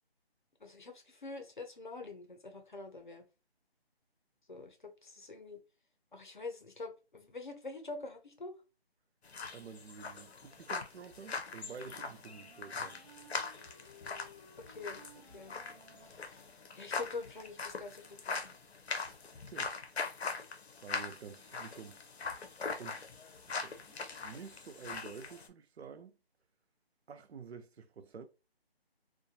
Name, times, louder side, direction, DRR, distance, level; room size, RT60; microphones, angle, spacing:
voice 1, 0.6-3.2 4.5-5.6 6.1-8.6 14.7-15.0 15.3-15.5 16.0-16.4 16.7-18.5, left 3 dB, 50° left, 0.6 m, -45 dB
sound 1, 9.2-25.5, left 4 dB, 85° left, 0.7 m, -42 dB
voice 2, 9.5-13.0 19.5-19.8 20.8-22.0 22.8-26.2 27.1-28.3, right 6 dB, 85° right, 0.5 m, -50 dB
Wind instrument woodwind instrument, 11.6-17.2, left 1 dB, ahead, 0.4 m, -59 dB
2.5 x 2.2 x 2.6 m
figure-of-eight pair, 180°, 31 cm